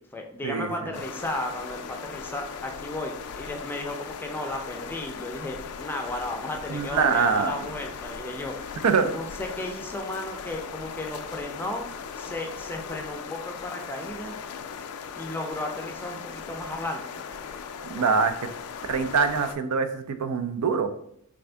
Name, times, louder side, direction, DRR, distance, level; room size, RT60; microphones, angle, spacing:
voice 1, 0.1-8.5 9.0-11.9 12.1-14.4 15.2-17.2 17.9-18.1, left 1 dB, 10° left, 2 dB, 0.4 m, -34 dB
sound 1, 0.9-19.6, left 6 dB, 75° left, 0.3 m, -38 dB
voice 2, 6.7-7.6 8.8-9.1 17.9-18.3 18.9-20.9, right 5 dB, 85° right, 9 dB, 0.4 m, -24 dB
3.6 x 2.5 x 3.3 m, 0.72 s
head